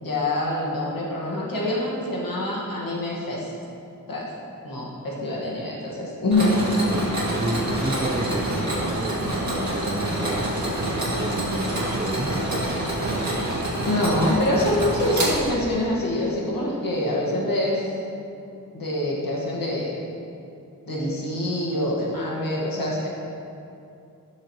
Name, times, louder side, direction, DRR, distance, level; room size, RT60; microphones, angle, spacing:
voice 1, 0.0-3.5 4.1-4.3 4.6-6.6 13.9-17.9 18.7-20.0 20.9-23.1, left 1 dB, 80° left, -4 dB, 1.9 m, -25 dB
Mechanisms, 6.3-15.9, right 1 dB, 55° right, 2.2 m, -27 dB
voice 2, 6.8-10.5 11.2-12.6 13.1-13.4, right 1 dB, 20° right, -1 dB, 0.5 m, -31 dB
11.5 x 6.8 x 3.2 m, 2.6 s
wide cardioid pair, 95°, 34 cm